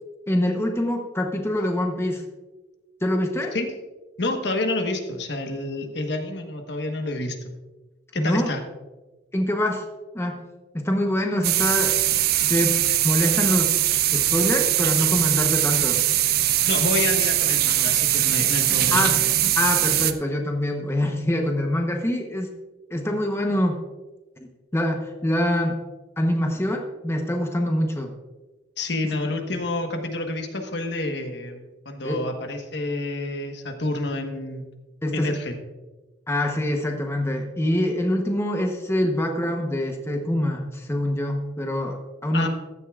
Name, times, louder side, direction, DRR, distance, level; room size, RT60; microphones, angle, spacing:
voice 1, 0.3-2.2 3.0-3.5 8.2-8.5 9.3-9.8 10.1-10.4 10.7-12.0 12.5-13.8 14.1-16.0 18.9-19.2 19.5-22.5 22.9-23.8 24.4-25.8 26.2-28.1 32.0-32.2 35.0-35.3 36.3-42.5, left 1 dB, 15° left, 3 dB, 0.9 m, -25 dB
voice 2, 4.2-7.4 8.1-8.6 16.7-19.1 28.8-34.6 35.1-35.6 42.3-42.5, left 2 dB, 65° left, 5 dB, 1.2 m, -28 dB
sound 1, 11.4-20.1, right 13 dB, 55° right, 0.5 m, -21 dB
15.0 x 11.0 x 2.4 m, 1.2 s
head